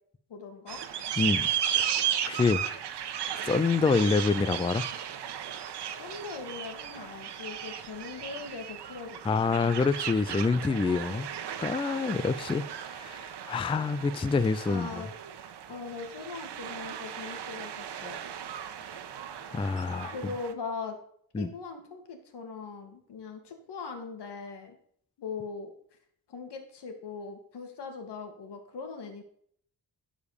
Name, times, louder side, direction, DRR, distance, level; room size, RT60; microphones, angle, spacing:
voice 1, 0.3-0.8 6.0-9.7 12.0-12.2 14.6-15.1 15.7-18.2 20.1-21.0 21.4-24.8 25.2-25.7 26.3-29.2, left 4 dB, 85° left, 2.5 m, -40 dB
sound 1, 0.7-20.5, right 9 dB, 90° right, 1.2 m, -35 dB
voice 2, 1.2-1.5 1.8-1.9 2.2-2.6 3.4-4.8 9.2-11.3 11.6-15.0 19.4-20.1 21.3-21.5, left 4 dB, 15° left, 0.3 m, -27 dB
15.0 x 5.2 x 6.7 m
wide cardioid pair, 175°, 40 cm